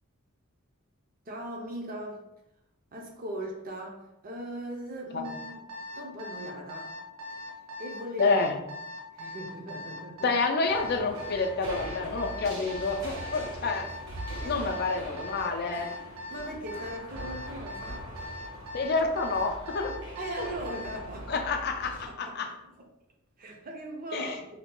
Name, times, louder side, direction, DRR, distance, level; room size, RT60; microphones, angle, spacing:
voice 1, 1.3-2.3 2.9-7.0 7.3-7.4 7.8-8.4 9.1-10.3 14.4-15.0 16.3-18.1 20.2-21.5 21.8-22.9 23.4-24.5, right 1 dB, 40° right, 1 dB, 0.6 m, -39 dB
Alarm, 5.2-21.1, left 1 dB, 90° right, 0.8 m, -41 dB
voice 2, 8.2-8.5 10.2-13.9 14.4-15.9 18.7-20.0 21.3-22.5 24.1-24.3, left 3 dB, 50° left, 5 dB, 0.4 m, -28 dB
sound 1, 10.6-22.1, right 1 dB, 75° right, 1.3 m, -42 dB
2.8 x 2.3 x 3.7 m, 0.88 s
head